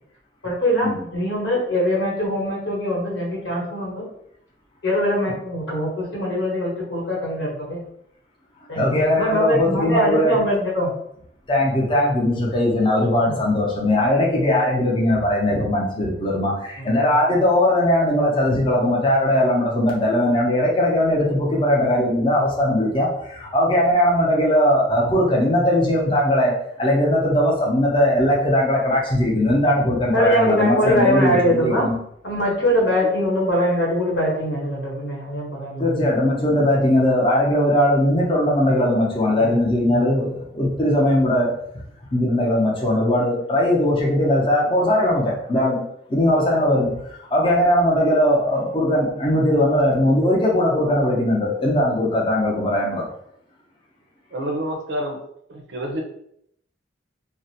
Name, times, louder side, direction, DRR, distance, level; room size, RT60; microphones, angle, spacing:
voice 1, 0.4-4.0 4.8-7.8 8.7-10.9 13.2-13.4 30.1-31.9 32.2-36.1 39.4-39.5 39.9-40.1, equal, 80° left, -4 dB, 1.0 m, -22 dB
voice 2, 8.7-10.4 11.5-32.0 35.8-41.5 42.1-45.8 46.1-53.0, left 1 dB, 30° left, -3 dB, 0.6 m, -19 dB
voice 3, 54.3-55.2 55.5-56.0, right 1 dB, 75° right, 2 dB, 0.5 m, -28 dB
2.5 x 2.1 x 2.7 m, 0.73 s
head